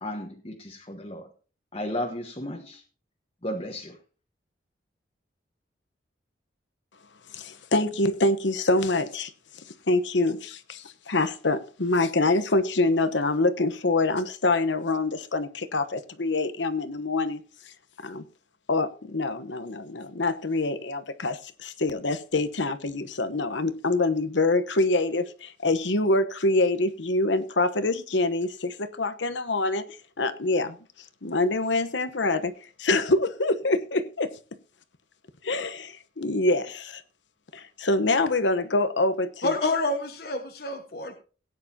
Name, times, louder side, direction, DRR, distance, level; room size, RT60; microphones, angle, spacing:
voice 1, 0.0-1.3 1.7-2.8 3.4-4.0, left 1 dB, 30° left, 1 dB, 1.3 m, -34 dB
voice 2, 7.3-9.3 9.9-17.4 18.0-18.2 18.7-29.8 30.2-30.8 31.2-32.5 32.8-34.3 35.4-37.0 37.5-39.5, left 2 dB, 85° left, 11 dB, 1.1 m, -25 dB
voice 3, 39.4-41.2, left 2 dB, 55° left, 4 dB, 1.3 m, -28 dB
17.5 x 9.5 x 2.8 m, 0.35 s
head